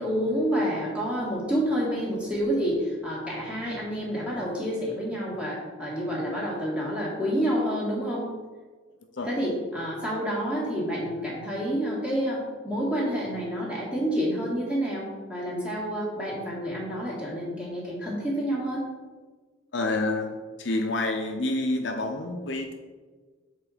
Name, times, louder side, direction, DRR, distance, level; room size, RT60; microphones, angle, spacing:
voice 1, 0.0-8.3 9.3-18.8, equal, 5° right, -6 dB, 1.9 m, -28 dB
voice 2, 19.7-22.7, left 2 dB, 60° left, 3 dB, 0.6 m, -28 dB
7.2 x 3.8 x 5.0 m, 1.4 s
head